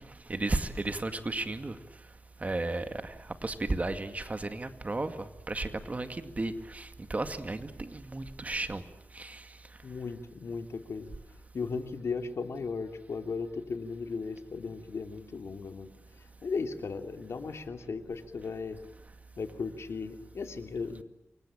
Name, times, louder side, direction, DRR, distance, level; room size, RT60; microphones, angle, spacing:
voice 1, 0.0-1.8 2.4-8.8 9.1-9.7, right 2 dB, 30° right, 8 dB, 2.1 m, -34 dB
voice 2, 9.8-11.1 11.5-18.8 19.4-21.0, left 4 dB, 80° left, 6 dB, 2.8 m, -36 dB
28.0 x 24.0 x 8.9 m, 0.83 s
wide cardioid pair, 100°, 5 cm